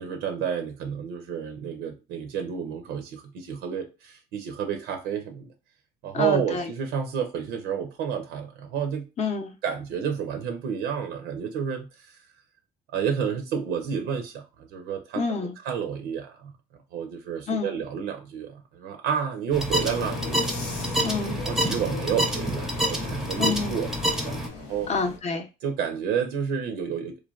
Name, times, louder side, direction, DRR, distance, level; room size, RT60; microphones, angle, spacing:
voice 1, 0.0-5.5 6.0-9.1 9.6-12.2 12.9-16.5 16.9-21.1 21.4-23.9 24.2-24.9 25.6-27.2, right 7 dB, 85° right, 0.6 m, -30 dB
voice 2, 6.1-6.7 9.2-9.5 15.2-15.5 17.5-17.8 21.0-21.4 23.4-23.7 24.9-25.5, left 4 dB, 40° left, 0.6 m, -28 dB
sound 1, 19.5-24.5, equal, ahead, 0.6 m, -28 dB
sound 2, 19.8-25.2, left 6 dB, 85° left, 0.7 m, -38 dB
3.1 x 2.1 x 2.4 m
cardioid pair, 110°, 17 cm